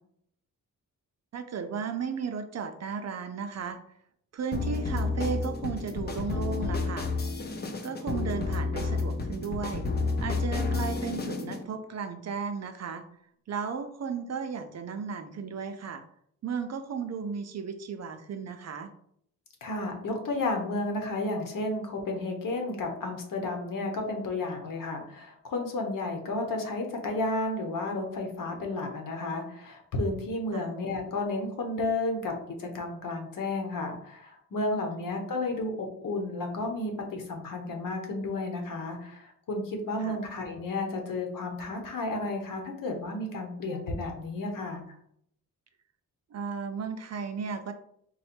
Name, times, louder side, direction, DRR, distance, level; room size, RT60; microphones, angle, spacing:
voice 1, 1.3-3.8 4.3-7.1 7.8-9.9 10.2-13.0 13.5-16.0 16.4-18.9 30.5-30.7 34.9-35.2 40.0-40.2 46.3-47.7, right 6 dB, 45° right, 8 dB, 0.5 m, -35 dB
sound 1, 4.5-11.6, left 3 dB, 30° left, 0.6 m, -30 dB
voice 2, 19.6-45.0, left 2 dB, 65° left, 3 dB, 1.1 m, -32 dB
4.1 x 2.2 x 4.3 m, 0.68 s
cardioid pair, 95°, 35 cm